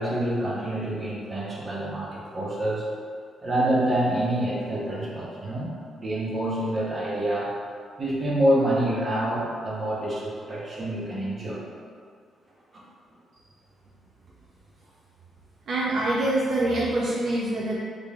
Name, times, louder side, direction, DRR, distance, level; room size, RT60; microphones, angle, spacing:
voice 1, 0.0-2.9 3.4-7.5 8.0-11.6 12.7-12.8, right 1 dB, 35° right, -5 dB, 0.8 m, -27 dB
voice 2, 15.7-17.7, right 1 dB, 60° right, -6 dB, 0.4 m, -25 dB
3.6 x 3.3 x 2.3 m, 2.1 s
cardioid pair, 115°, 0 cm